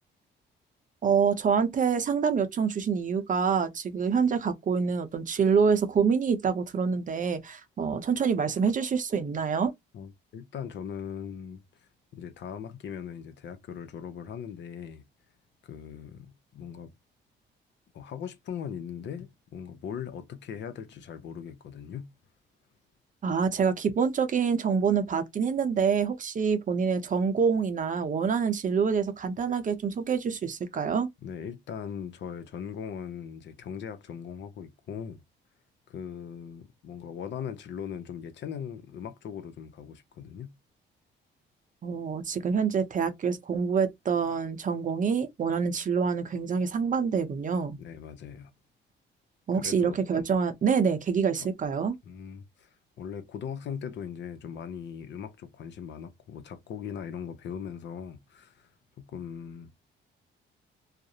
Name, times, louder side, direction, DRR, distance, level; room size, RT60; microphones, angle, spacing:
voice 1, 1.0-9.7 23.2-31.1 41.8-47.8 49.5-51.9, right 6 dB, 40° right, 0.6 m, -26 dB
voice 2, 9.9-15.0 15.6-16.9 17.9-22.1 31.2-35.2 35.9-40.6 47.8-48.5 49.5-50.0 52.0-52.7 53.0-58.7 59.0-59.7, left 8 dB, 65° left, 0.6 m, -39 dB
2.4 x 2.0 x 2.7 m
cardioid pair, 90°, 20 cm